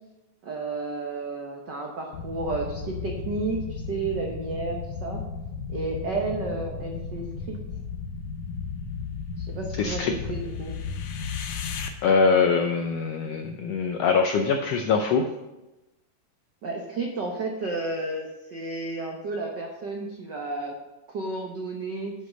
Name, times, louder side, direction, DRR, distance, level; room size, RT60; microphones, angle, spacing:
voice 1, 0.4-5.2 5.7-7.6 9.4-10.7 16.6-20.7 21.1-22.1, right 3 dB, 85° right, 0 dB, 0.9 m, -32 dB
sound 1, 2.1-11.9, left 5 dB, 70° left, 1.9 m, -34 dB
voice 2, 9.8-10.1 12.0-15.3, left 5 dB, 85° left, 5 dB, 1.4 m, -23 dB
8.8 x 5.7 x 6.3 m, 1.0 s
omnidirectional pair, 3.6 m